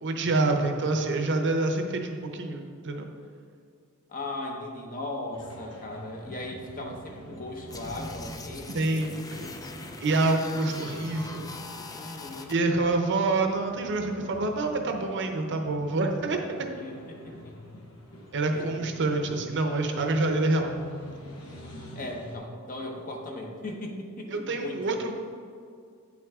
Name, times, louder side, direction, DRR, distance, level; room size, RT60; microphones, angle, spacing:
voice 1, 0.0-3.1 8.7-9.5 10.0-11.5 12.5-16.4 18.3-20.7 24.3-25.1, right 2 dB, 55° right, 4 dB, 0.7 m, -27 dB
voice 2, 4.1-9.1 11.9-12.5 16.8-17.5 18.5-18.7 21.9-25.0, left 1 dB, 40° left, 1 dB, 1.0 m, -38 dB
sound 1, 5.3-22.4, equal, 75° left, 1.1 m, -47 dB
sound 2, 7.7-12.5, left 3 dB, 15° left, 0.4 m, -41 dB
9.0 x 6.0 x 3.6 m, 2.3 s
head